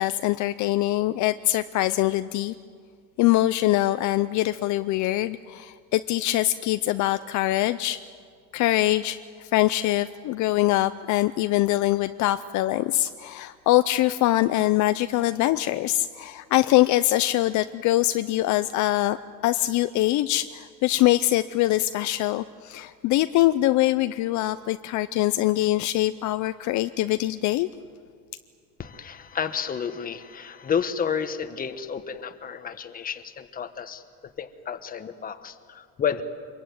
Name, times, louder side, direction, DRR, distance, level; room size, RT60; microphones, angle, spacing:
voice 1, 0.0-2.5 3.2-8.0 8.5-19.2 19.4-27.7, left 16 dB, 55° left, 11 dB, 0.7 m, -23 dB
voice 2, 28.8-36.2, left 7 dB, 25° left, 9 dB, 1.3 m, -31 dB
26.0 x 22.5 x 9.5 m, 2.1 s
cardioid pair, 160°, 35 cm